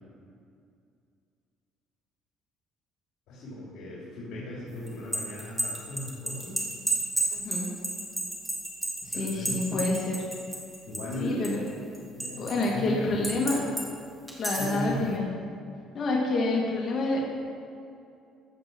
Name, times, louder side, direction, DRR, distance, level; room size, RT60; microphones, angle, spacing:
voice 1, 3.3-6.6 9.1-9.6 10.9-11.5 12.1-13.6 14.6-15.0, equal, 75° left, -7 dB, 3.0 m, -37 dB
sound 1, 4.9-11.2 11.4-12.7 13.2-13.9 14.3-14.8, right 2 dB, 5° right, 2.0 m, -31 dB
voice 2, 7.3-7.7 9.0-10.2 11.2-11.6 12.4-13.6 14.4-15.3 15.9-17.2, left 2 dB, 40° left, -3 dB, 2.2 m, -28 dB
15.0 x 5.1 x 6.2 m, 2.4 s
cardioid pair, 125°, 0 cm